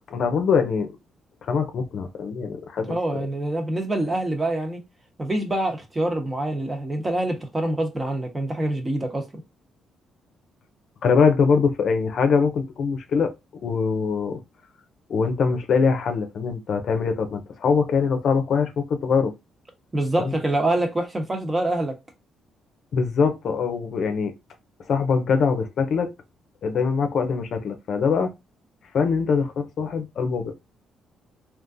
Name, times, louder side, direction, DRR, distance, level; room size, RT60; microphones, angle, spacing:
voice 1, 0.1-0.9 1.4-3.0 11.0-13.3 13.6-14.4 15.1-19.3 20.2-20.3 22.9-24.3 24.9-26.1 26.6-28.3 28.9-30.5, left 5 dB, 65° left, 0.7 m, -23 dB
voice 2, 2.9-4.8 5.2-9.3 19.9-22.0, right 1 dB, 20° right, 1.0 m, -25 dB
3.7 x 2.5 x 2.5 m
cardioid pair, 90°, 0 cm